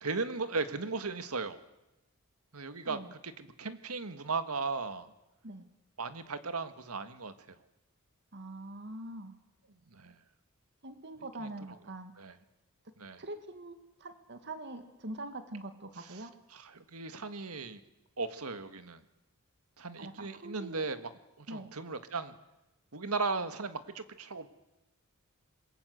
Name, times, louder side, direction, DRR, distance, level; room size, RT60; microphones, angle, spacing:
voice 1, 0.0-1.6 2.5-5.1 6.0-7.6 9.9-10.2 11.4-11.5 12.2-12.3 13.0-13.2 16.0-16.3 16.5-17.8 18.2-19.0 19.8-21.1 21.4-22.4 22.9-24.5, right 4 dB, 85° right, 10 dB, 1.8 m, -37 dB
voice 2, 8.3-9.3 10.8-12.1 13.2-16.3 20.0-20.8 21.5-21.7, right 2 dB, 55° right, 8 dB, 2.2 m, -43 dB
27.0 x 21.5 x 8.1 m, 0.96 s
head